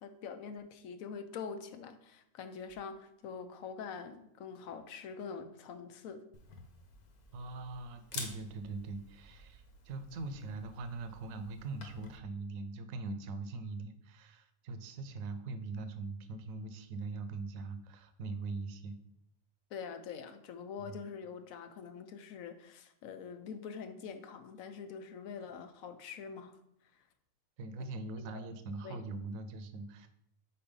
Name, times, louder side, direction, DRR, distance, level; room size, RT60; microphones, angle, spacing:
voice 1, 0.0-6.2 19.7-26.6 28.3-28.5 28.8-29.0, left 6 dB, 70° left, 9 dB, 1.0 m, -45 dB
Camera, 6.3-12.2, left 4 dB, 85° left, 1.5 m, -50 dB
voice 2, 7.3-19.0 20.8-21.0 27.6-30.1, right 3 dB, 70° right, 9 dB, 1.0 m, -42 dB
5.5 x 4.3 x 5.2 m, 0.75 s
omnidirectional pair, 1.6 m